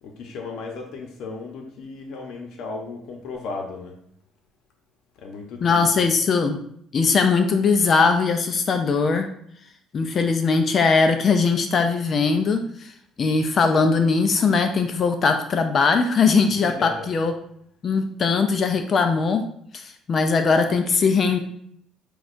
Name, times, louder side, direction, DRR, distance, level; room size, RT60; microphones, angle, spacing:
voice 1, 0.0-4.0 5.2-5.9 16.6-17.1, left 4 dB, 65° left, 2 dB, 0.8 m, -35 dB
voice 2, 5.6-6.6 6.9-9.3 9.9-12.9 13.2-17.3 17.8-19.4 19.7-19.8 20.1-21.4, left 4 dB, 35° left, 6 dB, 0.4 m, -20 dB
6.1 x 2.3 x 2.5 m, 0.68 s
cardioid pair, 145°, 0 cm